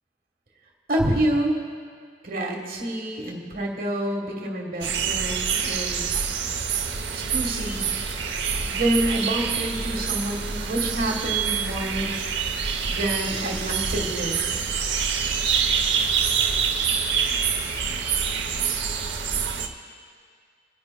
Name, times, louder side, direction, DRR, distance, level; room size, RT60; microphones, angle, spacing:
voice 1, 0.9-1.6 2.2-6.1 7.1-7.9 8.7-12.1 12.9-14.6, right 1 dB, 50° right, 1 dB, 1.4 m, -27 dB
sound 1, 4.8-19.7, right 6 dB, 75° right, 0.8 m, -26 dB
28.5 x 10.5 x 2.2 m, 2.1 s
head